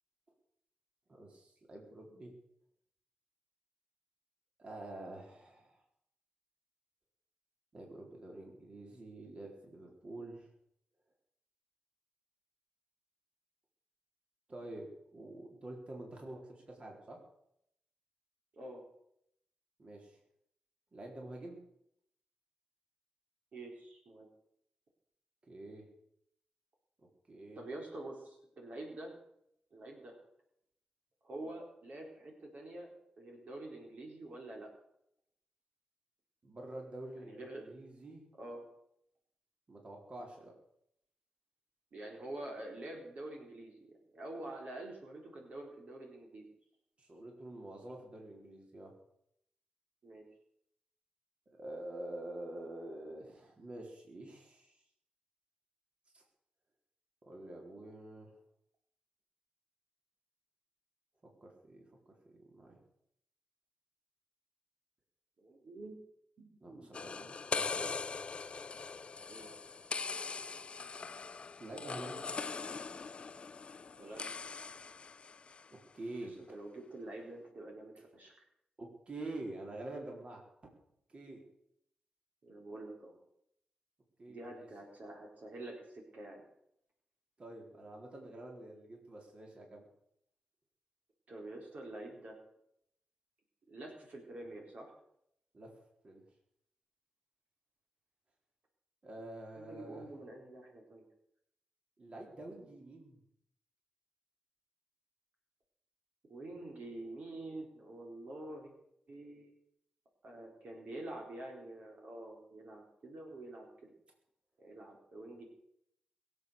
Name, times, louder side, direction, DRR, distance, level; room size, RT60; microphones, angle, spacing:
voice 1, 1.1-2.3 4.6-5.8 7.7-10.5 14.5-17.2 19.8-20.2 20.9-21.6 25.5-25.9 27.3-27.6 36.4-38.3 39.7-40.5 47.0-48.9 51.6-54.7 56.1-56.2 57.3-58.3 61.4-62.8 66.6-68.0 71.6-72.2 75.9-76.6 78.8-80.4 81.1-81.4 84.2-84.7 87.4-89.9 95.5-95.7 96.0-96.2 99.0-100.1 102.0-103.2, right 1 dB, 40° right, 0 dB, 4.1 m, -47 dB
voice 2, 23.5-24.3 27.6-29.2 29.7-30.1 31.2-34.7 37.1-37.7 38.4-38.7 41.9-46.4 50.0-50.3 65.4-65.9 66.4-66.9 69.3-69.5 73.9-74.3 76.5-78.4 82.4-83.2 84.3-86.4 91.3-92.4 93.7-94.9 99.6-101.1 102.6-102.8 106.3-108.7 109.1-109.5 110.2-113.9 114.6-115.4, right 1 dB, 60° right, 0 dB, 4.2 m, -47 dB
sound 1, 66.9-75.7, left 4 dB, 40° left, 0.5 m, -41 dB
22.0 x 8.0 x 6.8 m, 0.76 s
cardioid pair, 80°, 3 cm